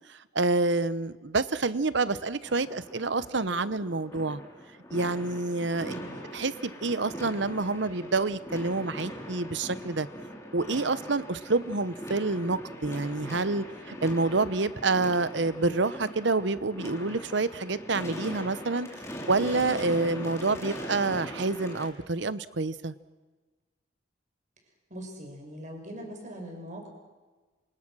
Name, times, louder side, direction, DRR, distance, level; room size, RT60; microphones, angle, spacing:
voice 1, 0.1-4.4 4.9-5.9 6.3-10.1 10.5-18.9 19.3-22.9, right 3 dB, 60° right, 15 dB, 1.0 m, -28 dB
sound 1, 2.4-21.9, equal, 15° left, 3.6 m, -41 dB
voice 2, 5.8-6.2 24.9-26.9, equal, 40° right, 2 dB, 6.0 m, -41 dB
27.5 x 27.0 x 6.3 m, 1.3 s
head